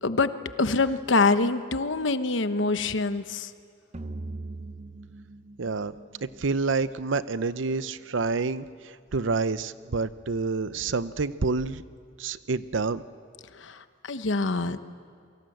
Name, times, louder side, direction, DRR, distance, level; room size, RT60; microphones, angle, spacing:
voice 1, 0.6-3.5 13.5-14.8, left 3 dB, 80° left, 11 dB, 1.0 m, -25 dB
sound 1, 3.9-7.2, right 2 dB, 35° right, 0.9 m, -41 dB
voice 2, 5.6-5.9 6.4-11.8 12.2-13.0, right 4 dB, 85° right, 15 dB, 0.7 m, -28 dB
28.5 x 24.0 x 7.9 m, 2.3 s
head